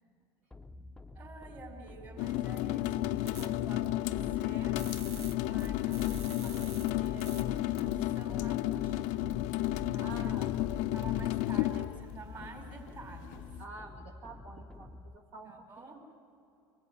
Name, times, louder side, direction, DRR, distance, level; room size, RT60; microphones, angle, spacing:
sound 1, 0.5-15.2, left 2 dB, 5° left, 0.7 m, -47 dB
voice 1, 1.1-4.8 5.1-9.4 9.9-10.5 10.9-13.4 15.4-16.0, right 3 dB, 35° right, 1 dB, 4.4 m, -50 dB
sound 2, 2.2-13.6, left 15 dB, 65° left, 0.5 m, -32 dB
sound 3, 3.3-3.5 4.8-7.4 7.8-7.9, right 5 dB, 85° right, 1.3 m, -47 dB
voice 2, 10.0-10.5 13.6-16.0, right 3 dB, 55° right, 0 dB, 1.9 m, -48 dB
22.5 x 13.5 x 8.3 m, 2.6 s
hypercardioid pair, 85°, 14 cm